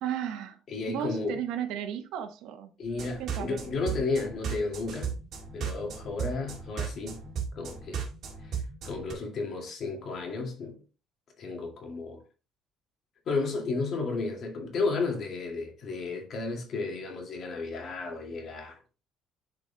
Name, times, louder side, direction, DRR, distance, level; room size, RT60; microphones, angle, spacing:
voice 1, 0.0-0.6 0.9-2.7 3.2-4.0, right 9 dB, 85° right, 1.1 m, -34 dB
voice 2, 0.7-1.4 2.8-5.2 5.5-7.2 7.6-8.1 8.4-10.8 11.4-12.2 13.3-18.8, left 3 dB, 50° left, 2.2 m, -33 dB
sound 1, 2.9-9.1, right 6 dB, 55° right, 2.2 m, -36 dB
11.0 x 4.9 x 2.2 m
cardioid pair, 130°, 0 cm